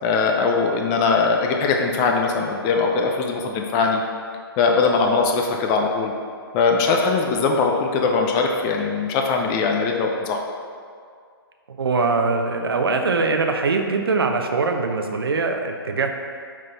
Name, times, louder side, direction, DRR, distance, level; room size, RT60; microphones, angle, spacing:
voice 1, 0.0-4.0 4.6-6.1 6.5-10.4, left 4 dB, 25° left, 2 dB, 0.6 m, -21 dB
voice 2, 11.7-16.2, right 3 dB, 70° right, 4 dB, 0.9 m, -22 dB
9.0 x 4.0 x 4.2 m, 2.2 s
figure-of-eight pair, 135°, 13 cm